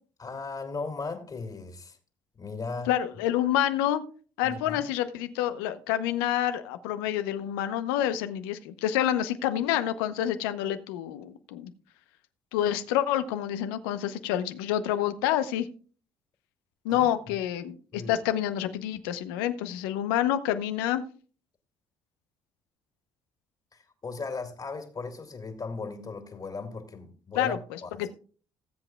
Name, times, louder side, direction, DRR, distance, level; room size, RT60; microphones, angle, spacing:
voice 1, 0.2-2.0 2.4-2.9 4.4-4.8 16.9-17.1 17.9-18.1 23.7-28.1, left 4 dB, 40° left, 2.2 m, -37 dB
voice 2, 2.9-4.0 4.4-11.7 12.5-15.7 16.8-21.0 27.4-28.1, left 11 dB, 85° left, 0.8 m, -28 dB
19.0 x 7.8 x 2.3 m
hypercardioid pair, 60°, 12 cm